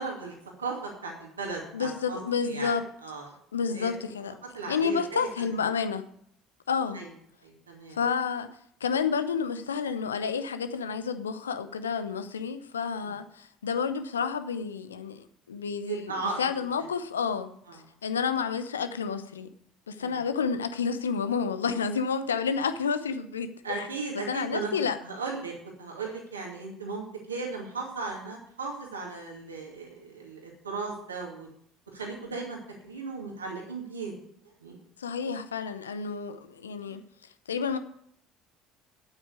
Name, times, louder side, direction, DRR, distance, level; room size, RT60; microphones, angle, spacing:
voice 1, 0.0-2.8 3.0-3.3 3.7-4.0 4.5-5.3 6.9-7.1 7.4-8.0 13.0-13.1 15.9-16.4 17.7-17.8 20.0-20.2 23.6-24.7 25.0-25.5 25.8-31.5 31.9-32.6 32.8-34.1 34.4-34.8 36.9-37.0, right 4 dB, 80° right, -1 dB, 2.4 m, -36 dB
voice 2, 1.7-2.8 3.5-4.3 4.7-6.1 6.7-7.0 7.9-8.5 8.8-16.1 16.4-17.5 18.0-19.5 19.9-23.5 23.8-23.9 24.3-25.0 35.0-37.0 37.5-37.8, left 6 dB, 80° left, 11 dB, 0.8 m, -30 dB
9.1 x 8.7 x 8.3 m, 0.68 s
figure-of-eight pair, 60°, 0 cm